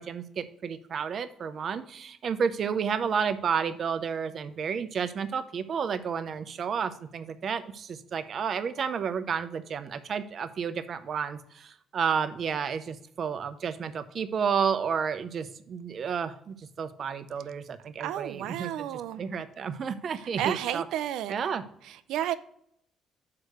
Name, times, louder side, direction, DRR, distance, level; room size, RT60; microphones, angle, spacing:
voice 1, 0.0-20.8 21.3-21.6, right 6 dB, 35° right, 0.6 m, -31 dB
voice 2, 18.0-19.2 20.2-21.3 21.8-22.3, right 11 dB, 80° right, 0.4 m, -32 dB
6.5 x 4.8 x 6.4 m
cardioid pair, 170°, 0 cm